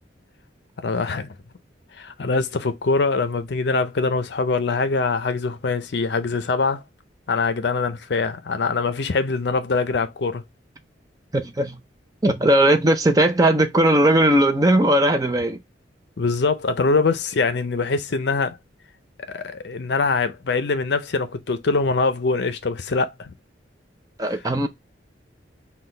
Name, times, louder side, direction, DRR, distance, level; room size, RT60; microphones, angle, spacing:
voice 1, 0.8-1.4 1.9-6.8 7.3-10.4 16.2-18.6 19.3-23.3, left 4 dB, 65° left, 0.5 m, -23 dB
voice 2, 11.3-11.8 12.2-15.6 24.2-24.7, right 1 dB, 20° right, 0.5 m, -18 dB
5.9 x 2.3 x 3.2 m
head